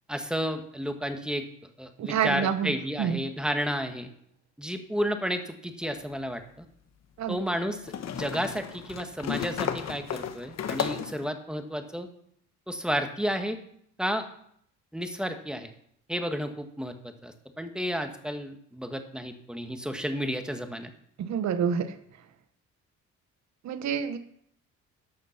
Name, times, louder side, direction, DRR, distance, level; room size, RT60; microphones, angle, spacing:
voice 1, 0.1-1.4 1.8-4.1 4.6-6.7 7.3-12.1 12.7-13.6 14.0-14.3 14.9-15.7 16.1-20.9, equal, 5° right, 6 dB, 1.4 m, -32 dB
voice 2, 2.0-2.7 3.0-3.2 7.2-7.6 21.2-22.0 23.6-24.2, right 7 dB, 65° right, 11 dB, 1.0 m, -28 dB
sound 1, 5.9-6.0 7.9-11.2, left 8 dB, 60° left, 1.1 m, -33 dB
12.0 x 6.5 x 5.8 m, 0.69 s
cardioid pair, 90°, 30 cm